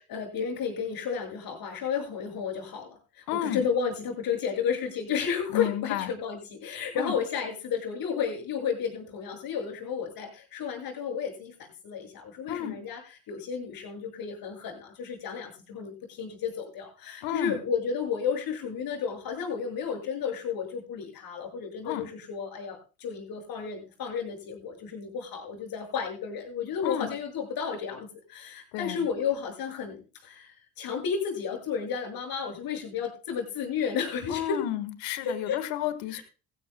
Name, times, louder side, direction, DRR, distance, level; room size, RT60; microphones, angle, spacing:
voice 1, 0.1-11.5 11.8-13.0 13.3-34.6 35.2-35.6 36.1-36.2, left 6 dB, 65° left, 2 dB, 7.4 m, -32 dB
voice 2, 3.3-3.7 5.5-6.1 7.0-7.1 12.5-12.7 17.2-17.6 21.8-22.0 26.8-27.1 28.7-29.1 34.3-36.2, left 12 dB, 80° left, 12 dB, 1.7 m, -31 dB
18.5 x 15.5 x 2.3 m, 0.34 s
hypercardioid pair, 65°, 39 cm